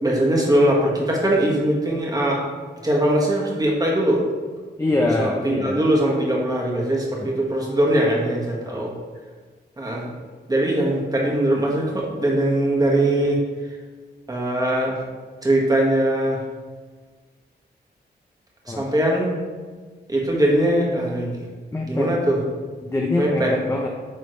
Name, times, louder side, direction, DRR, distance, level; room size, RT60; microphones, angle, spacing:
voice 1, 0.0-2.4 2.8-4.2 5.2-8.9 9.8-10.1 10.5-13.4 14.3-14.9 15.4-16.4 18.7-19.3 20.1-21.3 21.9-22.4 23.2-23.5, right 1 dB, 20° right, -2 dB, 1.5 m, -21 dB
voice 2, 4.8-5.8 7.2-7.3 8.7-8.9 18.7-18.8 21.7-22.1 22.8-23.9, left 2 dB, 15° left, 0 dB, 0.6 m, -24 dB
9.0 x 3.4 x 3.2 m, 1.5 s
wide cardioid pair, 90°, 18 cm